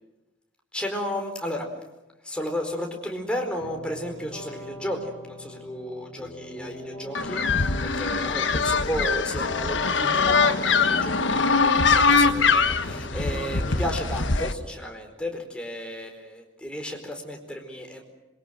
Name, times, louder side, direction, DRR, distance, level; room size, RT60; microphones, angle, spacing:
voice 1, 0.7-1.7 2.2-18.0, equal, 5° left, 2 dB, 4.5 m, -33 dB
sound 1, 3.6-13.8, equal, 25° left, 5.9 m, -42 dB
sound 2, 7.1-14.5, left 4 dB, 85° left, 1.4 m, -22 dB
27.0 x 23.5 x 7.7 m, 1.0 s
head